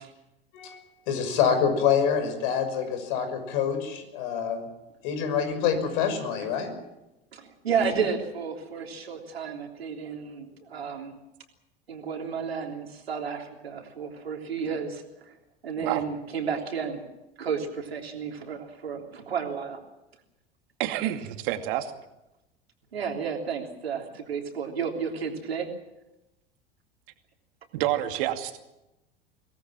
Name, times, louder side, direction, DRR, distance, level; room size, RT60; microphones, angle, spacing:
voice 1, 0.5-4.6 5.0-6.8, left 7 dB, 60° left, 8 dB, 6.0 m, -26 dB
voice 2, 7.3-11.1 11.9-15.3 15.6-17.0 17.4-19.8 22.9-25.7, right 6 dB, 80° right, 2 dB, 3.5 m, -32 dB
voice 3, 20.8-21.9 27.7-28.6, right 13 dB, 60° right, 6 dB, 2.5 m, -28 dB
24.0 x 18.5 x 7.6 m, 0.94 s
figure-of-eight pair, 80°, 30 cm